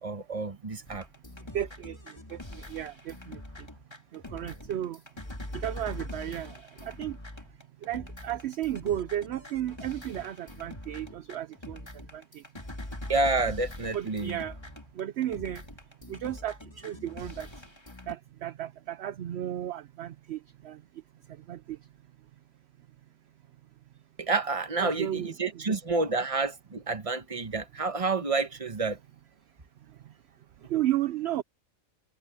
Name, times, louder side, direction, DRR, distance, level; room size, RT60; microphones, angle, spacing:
voice 1, 0.0-1.1 13.1-14.4 24.2-29.0, right 3 dB, 25° right, 1.2 m, -29 dB
sound 1, 0.9-18.2, left 1 dB, 20° left, 2.3 m, -43 dB
voice 2, 1.5-2.0 2.3-2.4 2.7-3.4 4.1-5.0 5.5-7.2 7.8-11.8 12.1-12.4 13.9-14.6 15.0-15.6 16.1-17.5 18.1-20.4 20.6-20.8 21.5-21.8 24.8-25.3 25.7-25.8 30.7-31.4, right 12 dB, 65° right, 0.8 m, -33 dB
omnidirectional pair, 1.4 m